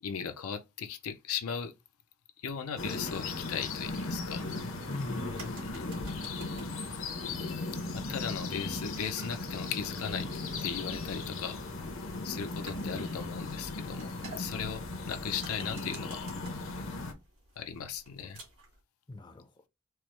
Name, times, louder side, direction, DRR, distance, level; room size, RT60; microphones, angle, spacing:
voice 1, 0.0-1.7 2.4-4.5 5.6-5.9 7.9-10.3 10.6-11.6 12.2-16.3 17.6-18.4, left 7 dB, 85° left, 0.5 m, -37 dB
sound 1, 2.8-17.1, left 3 dB, 65° left, 0.8 m, -37 dB
voice 2, 4.9-6.0 8.0-8.3 19.1-19.7, left 2 dB, 20° left, 0.4 m, -42 dB
sound 2, 5.0-18.8, right 3 dB, 85° right, 2.2 m, -53 dB
4.5 x 2.0 x 3.2 m
head